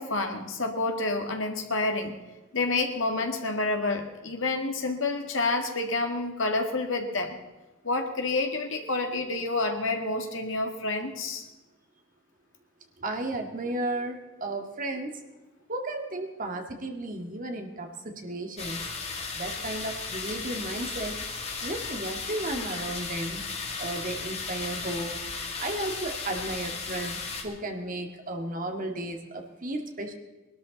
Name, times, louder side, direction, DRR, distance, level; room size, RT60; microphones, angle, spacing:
voice 1, 0.0-2.2 2.5-7.4 7.8-11.5, left 3 dB, 70° left, 4 dB, 2.0 m, -29 dB
voice 2, 13.0-15.2 15.7-18.8 19.3-21.2 21.6-23.4 23.8-25.2 25.6-30.1, right 1 dB, 40° right, 3 dB, 1.9 m, -34 dB
sound 1, 18.6-27.4, left 4 dB, 30° left, 2.2 m, -35 dB
21.0 x 12.5 x 4.1 m, 1.1 s
head